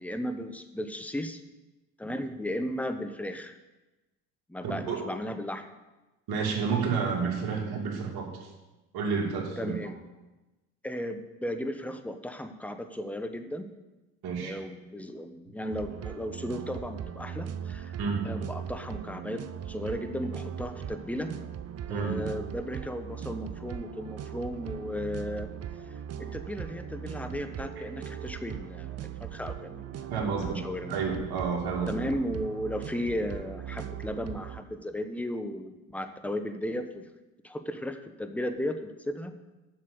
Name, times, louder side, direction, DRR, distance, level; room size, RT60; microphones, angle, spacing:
voice 1, 0.0-1.4 2.0-3.6 4.5-5.7 9.6-10.0 10.8-13.7 14.4-18.0 18.2-21.3 21.9-25.5 26.2-30.4 30.6-31.0 31.9-37.1 37.4-39.3, left 1 dB, 5° left, 8 dB, 1.0 m, -35 dB
voice 2, 4.6-5.1 6.3-8.5 8.9-9.8 14.2-14.6 18.0-18.3 21.9-22.2 30.1-30.6 30.9-32.0, right 5 dB, 60° right, -1 dB, 2.7 m, -30 dB
sound 1, 15.7-34.6, right 9 dB, 35° right, 0.7 m, -39 dB
7.6 x 6.6 x 8.0 m, 1.1 s
hypercardioid pair, 65°, 42 cm